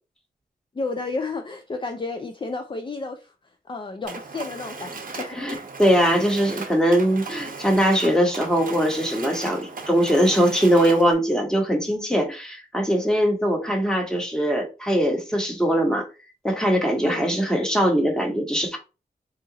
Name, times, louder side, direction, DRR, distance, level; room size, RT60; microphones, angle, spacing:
voice 1, 0.7-3.3 3.7-5.7 17.0-17.3, left 3 dB, 30° left, 0.4 m, -32 dB
Mechanisms, 4.0-11.1, right 4 dB, 55° right, 0.7 m, -37 dB
voice 2, 5.3-16.1 16.4-18.8, equal, 5° left, 1.2 m, -21 dB
2.8 x 2.5 x 3.8 m
cardioid pair, 65°, 17 cm